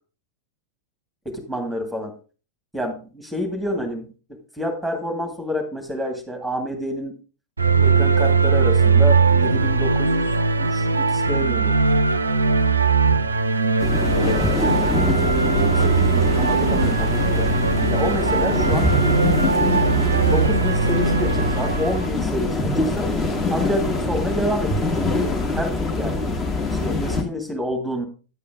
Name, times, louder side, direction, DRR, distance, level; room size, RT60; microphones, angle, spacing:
voice 1, 1.3-2.1 2.7-7.2 7.8-10.3 10.6-11.8 14.2-17.5 17.9-18.9 20.2-23.1 23.5-26.2 26.7-28.1, equal, ahead, 4 dB, 2.2 m, -28 dB
sound 1, 7.6-22.1, right 4 dB, 80° right, 0.5 m, -19 dB
sound 2, 13.8-27.2, left 2 dB, 25° left, 1.6 m, -24 dB
10.0 x 8.4 x 3.7 m, 0.34 s
figure-of-eight pair, 90°, 0 cm